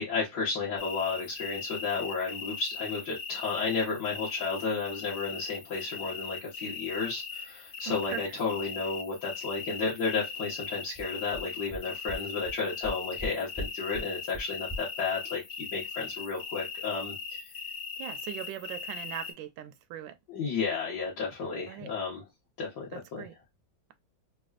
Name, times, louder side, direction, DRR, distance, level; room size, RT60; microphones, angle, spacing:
voice 1, 0.0-15.4 15.7-17.4 20.3-22.2 22.6-23.3, left 4 dB, 60° left, 1.7 m, -32 dB
sound 1, 0.8-19.3, left 5 dB, 75° left, 0.6 m, -40 dB
sound 2, 11.0-11.1 11.3-11.4 11.7-11.8 12.1-12.2 12.5-12.6 12.8-13.3 13.6-13.7 13.9-14.0 14.3-14.4 14.7-14.8, equal, 20° left, 0.7 m, -37 dB
voice 2, 18.0-20.2 21.7-21.9 22.9-23.3, right 11 dB, 80° right, 1.3 m, -40 dB
4.1 x 2.3 x 2.3 m
omnidirectional pair, 2.1 m